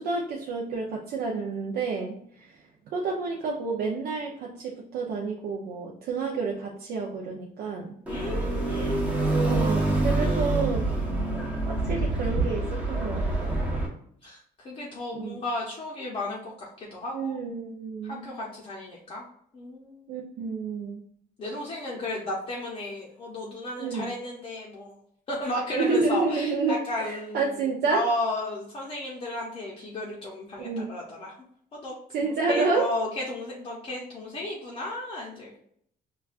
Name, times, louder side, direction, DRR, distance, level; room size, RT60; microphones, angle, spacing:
voice 1, 0.0-2.5 2.9-7.9 9.2-10.9 11.7-13.6 15.1-15.4 17.1-18.2 20.1-21.0 23.8-24.1 25.7-28.0 30.6-30.9 32.1-32.9, right 4 dB, 65° right, -2 dB, 0.6 m, -29 dB
voice 2, 8.1-9.3 14.2-17.4 18.0-19.2 19.5-20.1 21.4-25.0 25.3-27.6 27.9-31.3 31.7-35.6, left 1 dB, 30° left, -4 dB, 0.6 m, -34 dB
sound 1, 8.1-13.9, right 2 dB, 10° right, 0.7 m, -26 dB
5.6 x 2.3 x 2.4 m, 0.66 s
cardioid pair, 175°, 17 cm